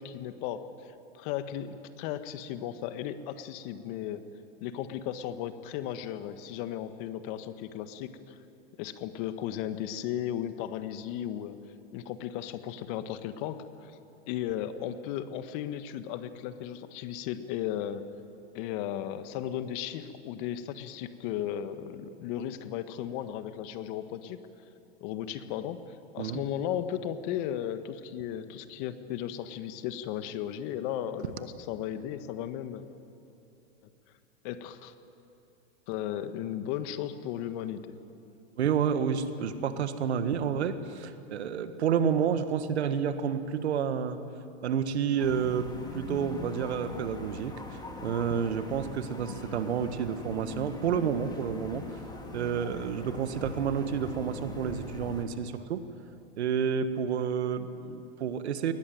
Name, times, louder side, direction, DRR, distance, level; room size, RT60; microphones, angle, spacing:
voice 1, 0.0-4.3 4.6-8.4 8.8-11.6 11.9-13.9 14.3-18.0 18.5-24.4 25.0-32.8 34.4-34.9 35.9-37.9, left 10 dB, 50° left, 10 dB, 1.6 m, -35 dB
voice 2, 38.6-44.2 44.6-47.6 48.0-51.9 52.3-55.8 56.4-58.7, right 7 dB, 80° right, 10 dB, 1.7 m, -30 dB
sound 1, 45.2-55.3, left 2 dB, 10° left, 2.9 m, -42 dB
21.0 x 20.0 x 9.2 m, 2.8 s
hypercardioid pair, 115°, 33 cm